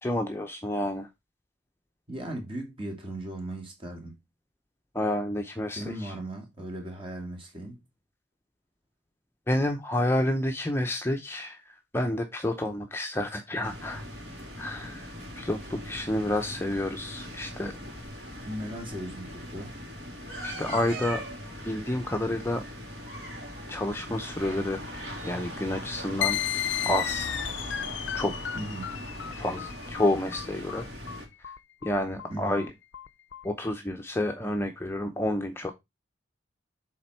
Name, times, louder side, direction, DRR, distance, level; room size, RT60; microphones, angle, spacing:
voice 1, 0.0-1.1 4.9-6.1 9.5-14.0 14.6-15.1 15.4-17.8 20.4-21.2 21.6-22.6 23.7-24.9 25.2-26.4 26.8-27.3 28.1-28.3 29.4-30.9 31.4-31.5 31.8-32.7 33.4-35.7, left 1 dB, 10° left, 0.6 m, -29 dB
voice 2, 2.1-4.2 5.8-7.8 18.4-19.8 28.5-28.9 32.3-32.6, right 1 dB, 30° right, 2.1 m, -37 dB
sound 1, 13.6-31.3, equal, 55° right, 3.1 m, -40 dB
sound 2, 26.2-33.4, left 11 dB, 70° left, 0.4 m, -33 dB
7.2 x 4.2 x 4.4 m
head